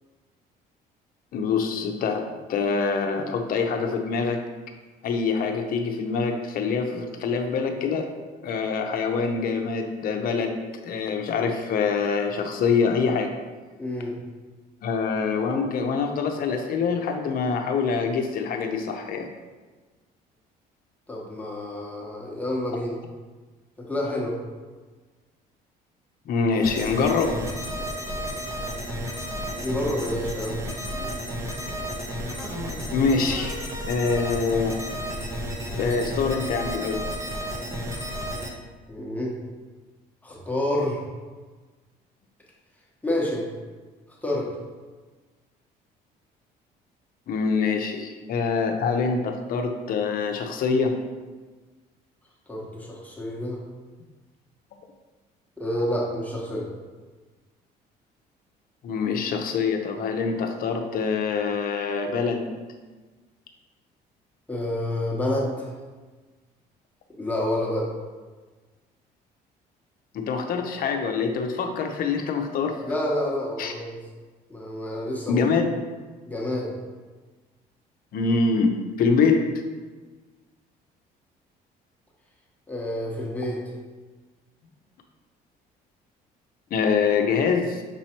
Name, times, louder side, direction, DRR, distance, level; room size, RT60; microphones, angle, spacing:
voice 1, 1.3-2.2 2.5-4.4 5.0-8.1 8.4-13.4 14.8-19.3 26.3-27.4 32.9-33.6 33.9-34.8 35.8-37.0 47.3-50.9 58.8-62.5 70.1-72.8 73.6-73.7 75.3-75.8 78.1-79.4 86.7-87.8, left 5 dB, 60° left, 4 dB, 0.6 m, -25 dB
voice 2, 13.8-14.1 21.1-23.0 23.8-24.4 29.6-30.7 38.9-39.3 40.2-41.0 43.0-43.5 44.2-44.5 52.5-53.6 55.6-56.7 64.5-65.7 67.1-67.9 72.9-74.0 74.5-75.4 76.3-76.7 82.7-83.6, left 1 dB, 10° left, -4 dB, 1.0 m, -28 dB
sound 1, 26.6-38.5, equal, 15° right, 0.7 m, -32 dB
6.1 x 3.0 x 2.9 m, 1.3 s
cardioid pair, 110°, 17 cm